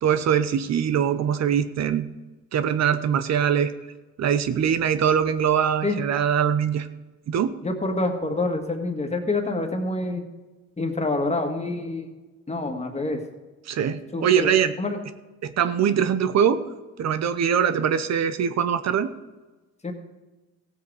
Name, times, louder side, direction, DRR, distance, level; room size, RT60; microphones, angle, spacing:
voice 1, 0.0-2.1 2.5-3.7 4.2-6.9 7.3-7.5 13.7-14.7 15.4-16.7 17.0-19.1, right 8 dB, 60° right, 12 dB, 0.7 m, -22 dB
voice 2, 7.6-10.3 10.8-12.1 12.5-13.2 14.1-14.5 14.8-15.0 19.8-19.9, left 2 dB, 20° left, 4 dB, 1.9 m, -27 dB
15.5 x 7.9 x 4.8 m, 1.2 s
cardioid pair, 90°, 30 cm